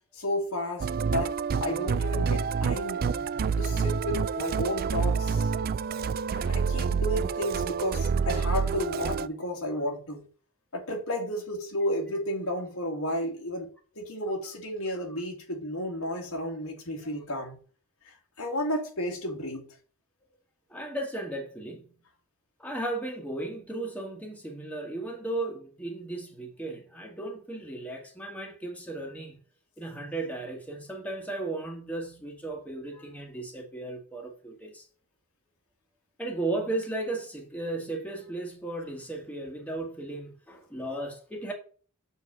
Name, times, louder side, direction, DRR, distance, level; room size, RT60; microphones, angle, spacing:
voice 1, 0.1-3.1 3.6-5.5 6.3-10.3 10.7-13.7 14.0-17.6 18.4-19.7, left 1 dB, 85° left, 2.5 m, -32 dB
Musical instrument, 0.8-9.3, right 5 dB, 45° right, 0.3 m, -28 dB
voice 2, 20.7-22.0 22.6-29.4 29.8-34.9 36.2-41.5, right 2 dB, 5° left, 1.6 m, -35 dB
7.0 x 4.2 x 5.5 m
head